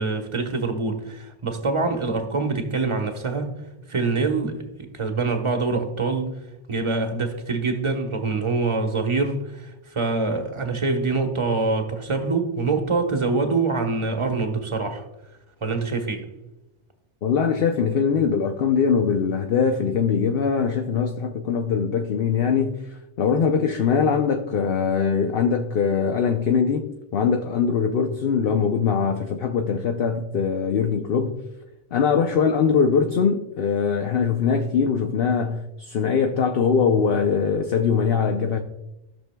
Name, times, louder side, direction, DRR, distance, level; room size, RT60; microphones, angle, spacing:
voice 1, 0.0-3.6 3.9-6.4 6.7-15.1 15.6-16.3, right 3 dB, 25° right, 1.0 m, -25 dB
voice 2, 17.2-31.4 31.9-38.6, left 6 dB, 60° left, 0.8 m, -22 dB
16.5 x 6.2 x 2.2 m
omnidirectional pair, 1.2 m